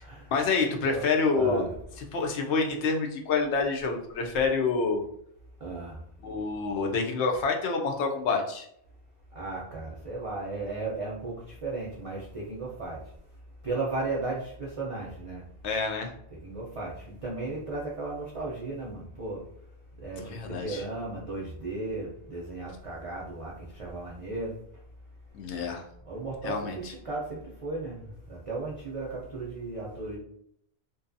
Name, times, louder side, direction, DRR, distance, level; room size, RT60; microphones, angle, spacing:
voice 1, 0.3-1.6 2.1-5.0 6.2-8.7 15.6-16.1 20.2-20.8 25.3-25.8 26.4-26.9, left 4 dB, 85° left, 2 dB, 0.9 m, -27 dB
voice 2, 1.3-1.7 5.6-6.0 9.4-13.0 13.6-15.4 16.3-19.4 20.0-24.5 26.1-28.0 28.3-30.2, right 3 dB, 50° right, -4 dB, 0.4 m, -35 dB
2.6 x 2.2 x 2.5 m, 0.71 s
omnidirectional pair, 1.1 m